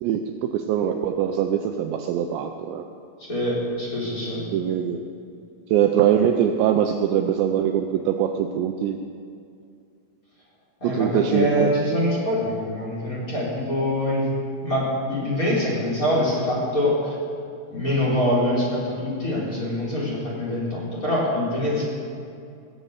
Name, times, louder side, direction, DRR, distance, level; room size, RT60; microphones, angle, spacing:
voice 1, 0.0-2.8 4.5-5.0 5.7-9.0 10.8-11.7, right 9 dB, 85° right, 5 dB, 2.6 m, -22 dB
voice 2, 3.2-4.4 10.8-14.3 14.6-17.2 17.7-21.8, left 1 dB, 20° left, -6 dB, 3.7 m, -24 dB
20.5 x 7.5 x 8.2 m, 2.4 s
omnidirectional pair, 5.7 m